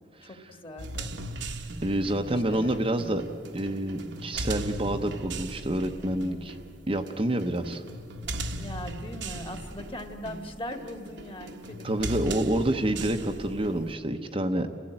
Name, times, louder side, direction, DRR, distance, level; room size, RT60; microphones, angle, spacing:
voice 1, 0.2-1.1 1.5-1.7 2.3-2.8 8.6-12.3, left 1 dB, 25° left, 6 dB, 1.8 m, -40 dB
sound 1, 0.8-13.9, right 1 dB, 60° right, 1.2 m, -38 dB
voice 2, 1.8-3.2 3.5-6.6 6.9-7.8 11.8-14.7, right 1 dB, 30° right, 5 dB, 0.9 m, -28 dB
30.0 x 16.0 x 8.9 m, 2.3 s
head